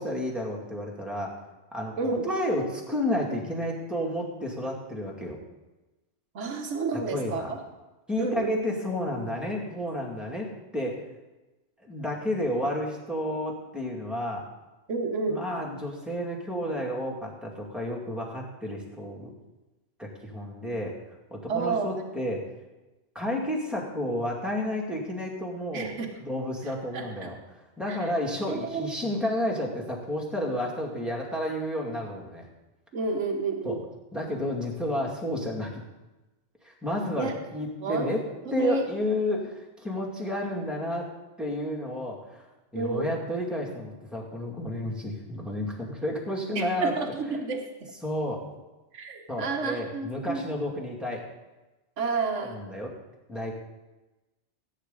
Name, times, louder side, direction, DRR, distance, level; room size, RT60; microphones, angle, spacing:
voice 1, 0.0-1.3 1.7-5.4 7.1-7.5 8.1-11.0 11.8-14.4 15.3-19.3 20.0-20.9 21.3-22.5 23.1-25.9 26.2-27.4 27.8-32.4 33.6-33.8 34.1-35.8 36.6-38.2 38.5-41.1 41.4-42.4 42.7-46.9 48.0-48.4 49.3-51.2 52.4-52.9 53.3-53.5, left 1 dB, ahead, -3 dB, 2.2 m, -31 dB
voice 2, 6.3-7.6 8.2-8.6 14.9-15.4 21.5-22.0 25.7-26.1 26.9-27.3 27.9-28.0 28.5-28.9 32.9-33.8 37.2-37.3 37.8-38.2 38.6-38.9 42.7-43.1 46.5-47.9 48.9-50.5 52.0-52.6, right 3 dB, 85° right, 3 dB, 1.5 m, -30 dB
16.5 x 9.0 x 3.9 m, 1.1 s
omnidirectional pair, 1.2 m